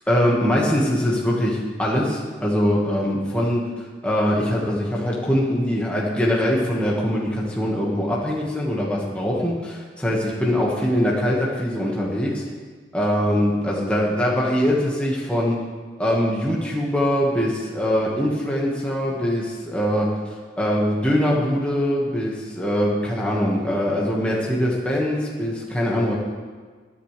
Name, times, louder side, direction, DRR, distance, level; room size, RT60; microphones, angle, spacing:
voice 1, 0.1-12.4 12.9-15.6 16.0-26.1, equal, 5° left, -4 dB, 1.7 m, -22 dB
21.0 x 10.5 x 3.4 m, 1.5 s
head